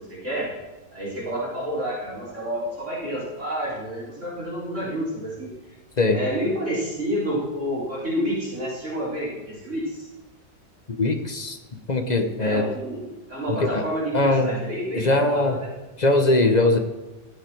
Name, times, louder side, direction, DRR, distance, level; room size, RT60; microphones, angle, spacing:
voice 1, 0.1-0.5 0.9-5.5 6.1-10.1 12.4-15.7, equal, 45° right, -8 dB, 4.2 m, -29 dB
voice 2, 11.0-12.7 13.5-13.8 14.1-14.6 14.9-15.6 16.0-16.8, left 2 dB, 35° left, 6 dB, 0.7 m, -21 dB
15.0 x 7.3 x 4.6 m, 1.1 s
omnidirectional pair, 1.8 m